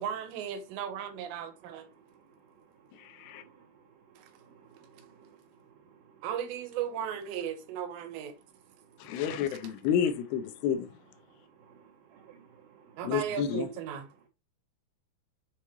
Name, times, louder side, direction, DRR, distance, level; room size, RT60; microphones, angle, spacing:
voice 1, 0.0-1.9 4.2-4.3 6.2-8.3 9.5-9.6 13.0-14.1, right 9 dB, 90° right, 3.3 m, -36 dB
voice 2, 3.3-3.7 4.4-5.4 6.0-6.2 9.0-9.2 11.6-13.0, right 7 dB, 65° right, 2.2 m, -57 dB
voice 3, 9.0-10.9 13.0-13.7, left 8 dB, 80° left, 2.8 m, -30 dB
7.3 x 5.1 x 3.0 m
omnidirectional pair, 4.9 m